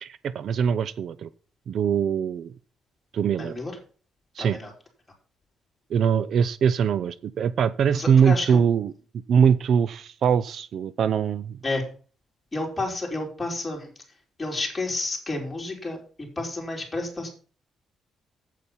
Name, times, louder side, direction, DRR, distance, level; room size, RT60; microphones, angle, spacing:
voice 1, 0.0-1.3 1.7-2.5 3.1-3.5 4.4-4.6 5.9-8.9 9.3-11.6, right 7 dB, 55° right, 17 dB, 0.5 m, -22 dB
voice 2, 3.4-3.8 4.4-4.7 7.9-8.6 11.6-11.9 12.5-13.9 14.4-17.3, left 2 dB, 15° left, 0 dB, 3.9 m, -30 dB
8.4 x 8.3 x 5.6 m, 0.40 s
cardioid pair, 135°, 0 cm